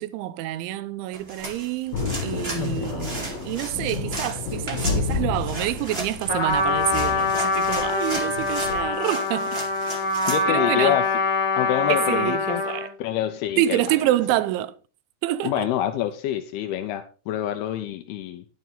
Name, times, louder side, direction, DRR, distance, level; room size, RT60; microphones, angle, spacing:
voice 1, 0.0-9.6 10.5-11.0 11.9-12.9 13.6-14.7 15.2-15.7, right 14 dB, 85° right, 3.1 m, -27 dB
sound 1, 1.1-10.4, right 2 dB, 35° right, 0.9 m, -36 dB
Thunder, 1.9-8.9, left 4 dB, 40° left, 5.0 m, -31 dB
voice 2, 2.6-2.9 10.3-11.1 11.6-12.6 13.0-14.0 15.4-18.5, left 11 dB, 80° left, 2.3 m, -27 dB
Trumpet, 6.3-12.9, left 3 dB, 20° left, 3.2 m, -24 dB
10.5 x 9.2 x 4.0 m
omnidirectional pair, 5.4 m